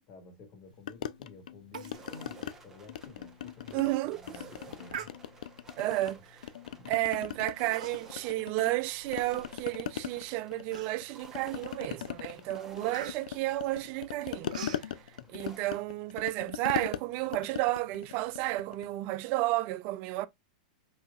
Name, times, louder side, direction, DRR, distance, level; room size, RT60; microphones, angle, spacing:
voice 1, 0.1-5.1 6.0-6.3 6.7-7.0 15.2-15.3, left 3 dB, 40° left, 1.8 m, -53 dB
sound 1, 0.9-2.6 2.9-4.0 4.3-6.1 6.4-8.8 9.1-18.9, left 10 dB, 85° left, 0.4 m, -40 dB
Human voice, 1.7-2.1 2.4-2.5 3.0-3.1 3.7-3.9 4.9-5.6 6.4-6.6 7.6-8.2 8.6-9.7 10.1-10.2 10.7-11.3 11.8-12.0 12.3-14.9, right 8 dB, 75° right, 0.9 m, -44 dB
sound 2, 1.9-15.7, right 4 dB, 10° right, 0.9 m, -55 dB
voice 2, 3.7-4.2 5.8-6.2 6.9-14.6 15.3-20.3, right 17 dB, 40° right, 0.4 m, -32 dB
5.4 x 2.8 x 2.4 m
supercardioid pair, 145°, 4 cm